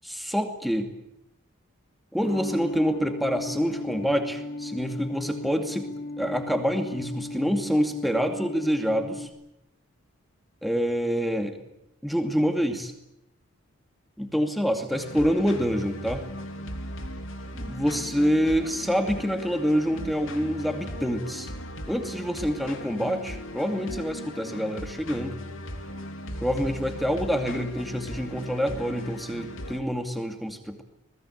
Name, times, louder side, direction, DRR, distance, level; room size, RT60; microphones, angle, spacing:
voice 1, 0.0-0.9 2.1-5.9 6.2-9.3 10.6-11.6 12.0-12.9 14.2-16.3 17.5-21.5 21.9-25.4 26.4-30.8, equal, ahead, 5 dB, 2.4 m, -26 dB
sound 1, 2.2-9.3, left 2 dB, 45° left, 4.8 m, -36 dB
sound 2, 14.9-29.8, left 1 dB, 65° left, 2.8 m, -38 dB
26.5 x 19.5 x 8.3 m, 0.86 s
head